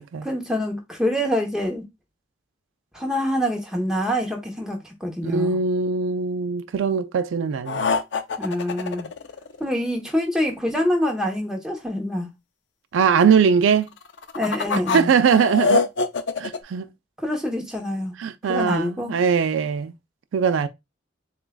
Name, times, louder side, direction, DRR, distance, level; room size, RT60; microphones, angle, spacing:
voice 1, 0.2-1.8 2.9-5.6 8.4-9.1 9.6-12.3 14.3-15.1 17.2-18.1 18.5-19.1, equal, 5° right, 0.9 m, -25 dB
voice 2, 5.2-7.9 12.9-13.9 14.9-15.8 16.4-16.9 18.2-19.9 20.3-20.7, right 6 dB, 80° right, 0.4 m, -21 dB
sound 1, 7.7-9.9 14.0-16.6, left 4 dB, 65° left, 0.5 m, -24 dB
7.0 x 2.3 x 2.3 m
head